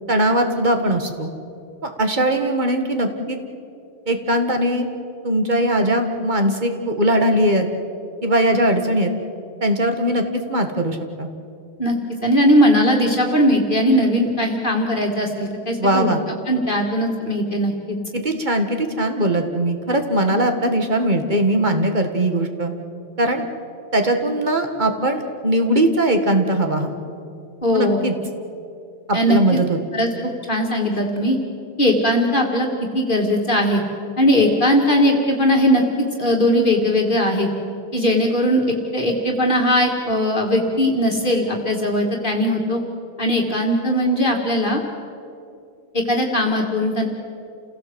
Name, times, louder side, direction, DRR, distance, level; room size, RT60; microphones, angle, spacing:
voice 1, 0.1-1.3 1.8-3.4 4.1-4.9 5.2-7.7 8.2-9.1 9.6-10.2 10.5-11.3 15.8-16.2 18.1-22.7 23.2-23.5 23.9-26.9 27.7-28.2 29.1-29.8, right 1 dB, 45° right, 5 dB, 1.9 m, -20 dB
voice 2, 12.2-18.0 27.6-28.0 29.1-29.4 29.9-30.1 30.5-31.4 31.8-32.7 32.9-33.8 34.2-35.8 36.2-37.5 37.9-42.8 43.2-44.8 45.9-47.1, equal, 50° left, 0 dB, 2.2 m, -19 dB
28.5 x 17.0 x 7.9 m, 2.5 s
omnidirectional pair, 1.1 m